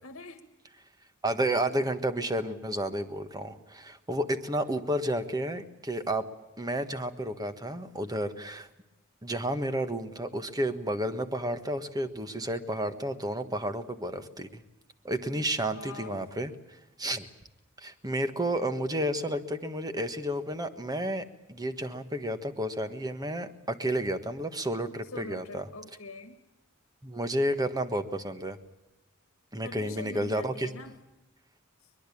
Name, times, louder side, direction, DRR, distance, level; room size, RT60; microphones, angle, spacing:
voice 1, 0.0-0.4 15.3-16.3 25.0-26.4 29.6-31.0 31.8-31.9, left 3 dB, 80° left, 8 dB, 1.7 m, -44 dB
voice 2, 1.2-6.3 6.6-8.7 9.2-14.6 15.0-16.5 17.0-17.3 17.8-25.6 27.0-28.6 29.5-30.7, right 1 dB, 20° right, 9 dB, 1.5 m, -31 dB
23.0 x 21.5 x 8.6 m, 0.97 s
head